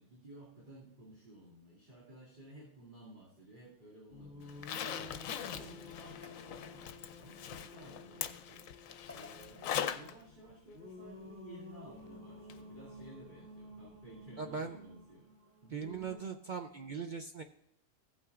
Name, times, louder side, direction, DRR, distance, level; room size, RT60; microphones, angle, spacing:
voice 1, 0.0-15.3 15.6-15.9, right 1 dB, 40° right, -6 dB, 2.6 m, -55 dB
Singing, 4.1-16.2, left 2 dB, 10° right, 1.8 m, -52 dB
Zipper (clothing), 4.5-10.1 10.5-10.6 12.5-12.6 13.0-13.1, left 9 dB, 85° left, 1.0 m, -41 dB
sound 1, 5.9-7.3 8.9-9.7, left 3 dB, 15° left, 0.7 m, -56 dB
voice 2, 14.4-14.8 15.7-17.4, right 5 dB, 70° right, 5 dB, 0.4 m, -40 dB
15.5 x 8.7 x 2.4 m, 0.80 s
omnidirectional pair, 1.3 m